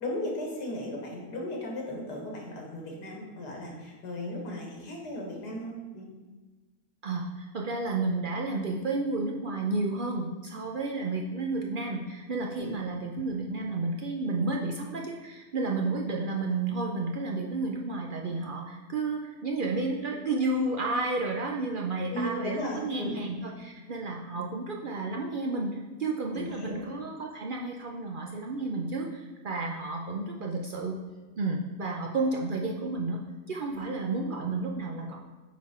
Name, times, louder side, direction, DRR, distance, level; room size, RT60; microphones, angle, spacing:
voice 1, 0.0-6.1 12.6-12.7 22.1-23.2 26.3-26.8 33.7-33.9, left 1 dB, 90° left, -1 dB, 2.1 m, -36 dB
voice 2, 7.0-31.0 31.4-33.2 33.5-35.2, right 3 dB, 75° right, 0 dB, 0.4 m, -31 dB
9.3 x 4.2 x 4.3 m, 1.2 s
omnidirectional pair, 1.7 m